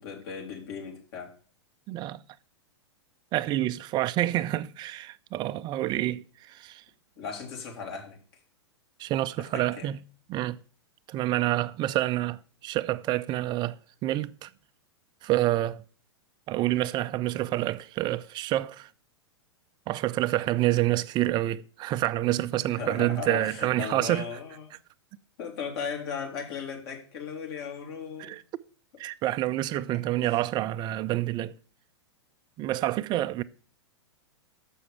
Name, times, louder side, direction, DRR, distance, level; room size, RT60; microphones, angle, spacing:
voice 1, 0.0-1.3 7.2-8.2 9.4-9.9 22.3-24.7 25.4-28.3 30.2-30.4, left 6 dB, 60° left, 2.9 m, -37 dB
voice 2, 1.9-2.2 3.3-6.8 9.0-10.0 10.3-10.6 11.1-13.8 14.0-14.5 15.2-15.8 16.5-18.9 19.9-24.2 28.2-28.4 29.0-31.5 32.6-33.4, right 15 dB, 30° right, 0.4 m, -28 dB
7.1 x 6.1 x 7.0 m
hypercardioid pair, 110°, 14 cm